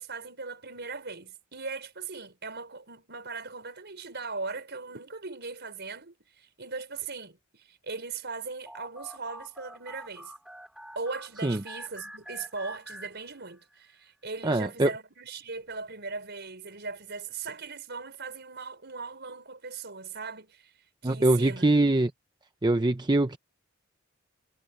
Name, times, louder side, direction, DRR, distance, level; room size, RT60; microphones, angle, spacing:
voice 1, 0.0-10.3 11.0-20.7 21.0-21.7, right 4 dB, 55° right, 5.5 m, -39 dB
sound 1, 8.7-13.8, equal, 5° right, 2.7 m, -46 dB
voice 2, 14.4-14.9 21.0-22.1 22.6-23.4, right 2 dB, 20° right, 0.7 m, -23 dB
head